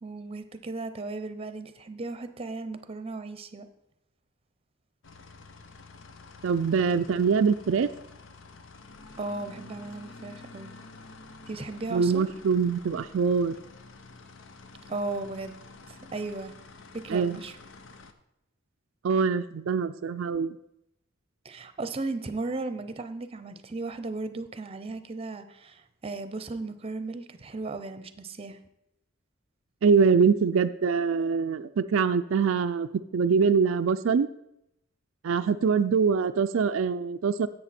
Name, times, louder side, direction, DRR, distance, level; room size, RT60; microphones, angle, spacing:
voice 1, 0.0-3.7 9.2-10.7 11.5-12.3 14.9-15.6 15.9-16.5 16.9-17.6 21.4-28.6, right 3 dB, 30° right, 10 dB, 0.7 m, -36 dB
sound 1, 5.0-18.1, left 3 dB, 65° left, 0.8 m, -49 dB
voice 2, 6.4-7.9 11.9-13.5 17.1-17.4 19.0-20.5 29.8-34.3 35.2-37.5, right 5 dB, 75° right, 9 dB, 0.4 m, -24 dB
11.0 x 7.8 x 4.3 m, 0.81 s
head